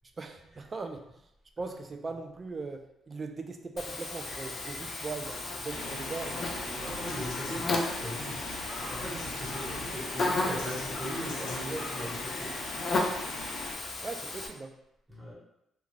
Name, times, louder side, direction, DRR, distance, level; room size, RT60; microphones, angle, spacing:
voice 1, 0.2-1.1 1.6-6.9 14.0-14.8, right 3 dB, 35° right, 5 dB, 0.3 m, -39 dB
Buzz, 3.8-14.5, left 2 dB, 45° left, 0.4 m, -35 dB
sound 1, 5.7-13.7, left 2 dB, 90° left, 0.6 m, -40 dB
voice 2, 6.8-8.4 8.8-12.5 15.1-15.3, equal, 10° right, -7 dB, 1.2 m, -39 dB
2.4 x 2.3 x 3.1 m, 0.83 s
cardioid pair, 90°, 0 cm